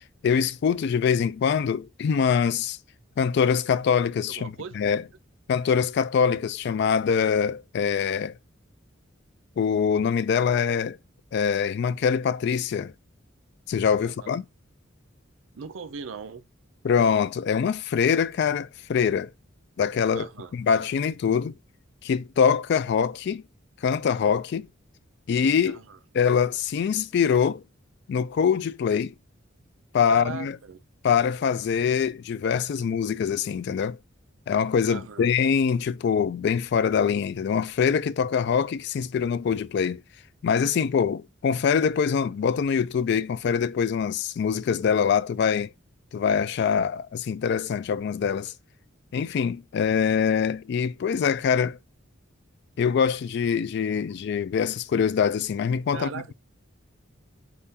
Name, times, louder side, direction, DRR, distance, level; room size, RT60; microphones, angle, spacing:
voice 1, 0.2-2.8 3.2-5.0 5.5-8.3 9.6-11.0 11.3-12.9 13.7-14.5 16.8-19.3 19.8-21.5 22.0-23.4 23.8-24.7 25.3-25.8 26.2-27.6 28.1-29.1 29.9-30.6 31.0-34.0 34.5-40.0 40.4-45.7 46.1-48.5 49.1-51.8 52.8-56.3, left 7 dB, 60° left, 0.3 m, -24 dB
voice 2, 4.3-4.8 14.0-14.4 15.5-16.4 20.1-20.5 25.6-26.0 30.1-30.8 34.9-35.3 55.9-56.3, right 6 dB, 80° right, 0.5 m, -38 dB
4.1 x 3.6 x 2.8 m
head